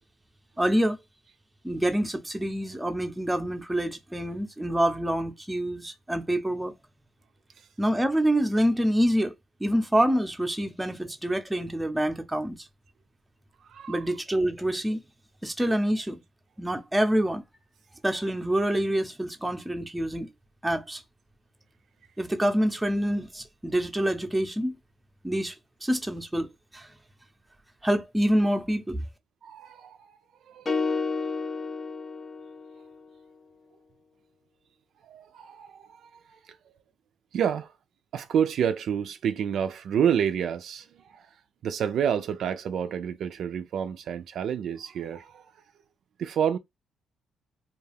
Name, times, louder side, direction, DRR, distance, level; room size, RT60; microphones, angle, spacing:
voice 1, 0.6-1.0 1.6-6.7 7.8-9.3 9.6-12.6 13.9-15.0 15.4-16.2 16.6-17.4 18.0-20.3 20.6-21.0 22.2-24.7 25.2-25.6 25.8-26.5 26.7-26.9 27.8-29.0, right 1 dB, 10° right, 0.6 m, -26 dB
voice 2, 13.7-14.0 29.4-30.2 30.5-30.8 35.0-36.6 37.3-37.7 38.1-41.3 41.6-45.5 46.2-46.6, right 8 dB, 70° right, 0.3 m, -29 dB
sound 1, 30.7-33.0, left 4 dB, 35° left, 0.5 m, -31 dB
2.3 x 2.3 x 3.3 m
cardioid pair, 90°, 0 cm